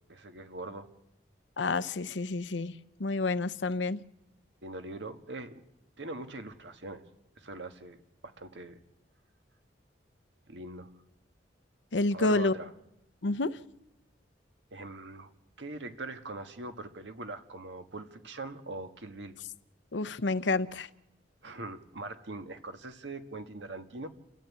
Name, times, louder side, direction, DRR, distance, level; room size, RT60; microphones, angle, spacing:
voice 1, 0.1-0.9 4.6-5.6 6.0-7.0 7.4-8.0 8.2-8.8 10.5-10.9 12.1-12.7 14.7-15.3 15.6-19.4 21.4-24.1, right 2 dB, 85° right, 7 dB, 1.7 m, -42 dB
voice 2, 1.6-2.7 3.0-4.0 11.9-12.5 13.2-13.6 19.9-20.9, left 3 dB, 85° left, 13 dB, 0.8 m, -29 dB
29.0 x 13.5 x 8.5 m, 0.89 s
head